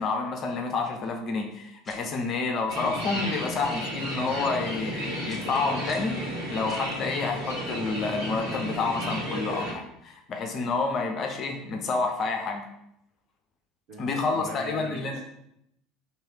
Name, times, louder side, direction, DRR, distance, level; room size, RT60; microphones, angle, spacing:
voice 1, 0.0-12.6 14.0-15.2, left 4 dB, 40° left, 3 dB, 0.5 m, -29 dB
sound 1, 1.8-2.2 3.5-3.8 5.3-5.6 5.8-6.2 6.7-7.0, left 1 dB, 15° left, 1.2 m, -48 dB
sound 2, 2.7-9.7, equal, 80° right, 1.4 m, -33 dB
voice 2, 13.9-15.2, right 2 dB, 55° right, -2 dB, 1.1 m, -40 dB
3.1 x 2.9 x 4.4 m, 0.78 s
figure-of-eight pair, 70°, 0 cm